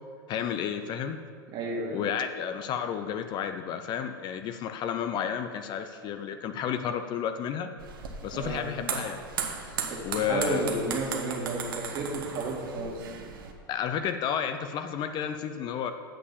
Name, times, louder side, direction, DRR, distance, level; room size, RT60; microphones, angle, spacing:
voice 1, 0.3-1.2 1.9-7.7 8.2-9.2 10.0-10.8 13.7-15.9, left 8 dB, 40° left, 8 dB, 0.6 m, -31 dB
voice 2, 1.5-2.0 8.3-8.8 9.9-13.1, right 2 dB, 40° right, 0 dB, 2.1 m, -32 dB
sound 1, 7.8-13.5, right 6 dB, 80° right, 1.1 m, -36 dB
7.7 x 6.6 x 7.0 m, 2.1 s
hypercardioid pair, 105°, 11 cm